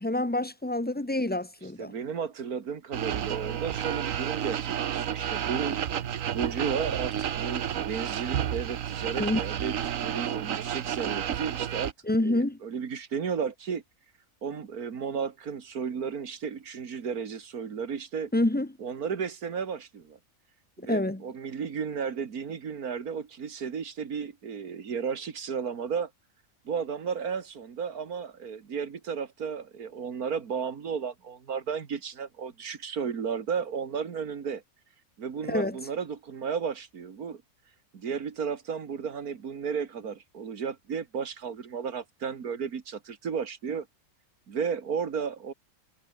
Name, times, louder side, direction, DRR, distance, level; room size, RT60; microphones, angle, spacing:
voice 1, 0.0-1.9 9.2-9.4 12.1-12.6 18.3-18.7 20.9-21.2 35.5-35.8, left 1 dB, 10° left, 0.9 m, -27 dB
voice 2, 1.8-5.8 6.3-9.8 10.0-11.9 12.2-13.8 14.4-18.3 18.8-20.2 20.8-26.1 26.7-34.6 35.2-37.4 37.9-43.9 44.5-45.5, right 6 dB, 80° right, 2.2 m, -33 dB
sound 1, 2.9-11.9, right 9 dB, 65° right, 1.3 m, -31 dB
omnidirectional pair, 1.5 m